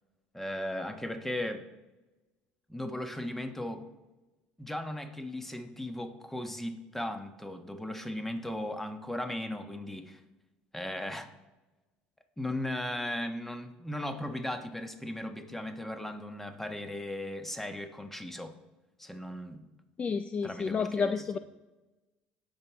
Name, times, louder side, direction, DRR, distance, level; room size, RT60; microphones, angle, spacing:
voice 1, 0.3-1.7 2.7-3.8 4.6-10.2 10.7-11.3 12.4-18.6 19.0-19.6 20.4-21.4, left 1 dB, 5° left, 7 dB, 1.3 m, -37 dB
voice 2, 20.0-21.4, left 5 dB, 35° left, 11 dB, 0.4 m, -30 dB
17.5 x 6.2 x 3.4 m, 1.1 s
hypercardioid pair, 75°, 4 cm